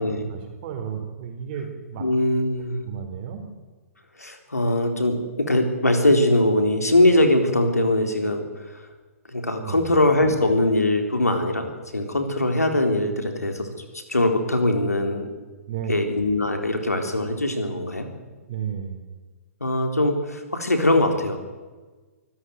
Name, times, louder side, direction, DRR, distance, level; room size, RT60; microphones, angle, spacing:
voice 1, 0.3-2.1 2.8-3.4 9.6-9.9 15.7-15.9 18.5-19.0, right 8 dB, 40° right, 4 dB, 4.0 m, -33 dB
voice 2, 2.0-2.8 4.2-8.9 9.3-15.3 15.9-18.1 19.6-21.4, left 1 dB, 85° left, 5 dB, 3.8 m, -22 dB
25.0 x 14.5 x 9.4 m, 1.3 s
figure-of-eight pair, 125°, 8 cm